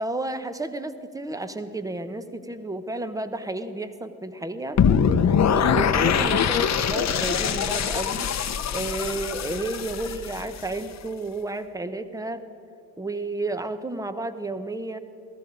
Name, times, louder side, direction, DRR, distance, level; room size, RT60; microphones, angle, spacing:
voice 1, 0.0-4.8 5.5-8.3 8.7-12.4 13.0-15.0, right 2 dB, 10° right, 11 dB, 0.9 m, -32 dB
sound 1, 4.8-10.8, left 7 dB, 40° left, 0.9 m, -23 dB
16.5 x 14.0 x 5.2 m, 2.4 s
supercardioid pair, 85°, 41 cm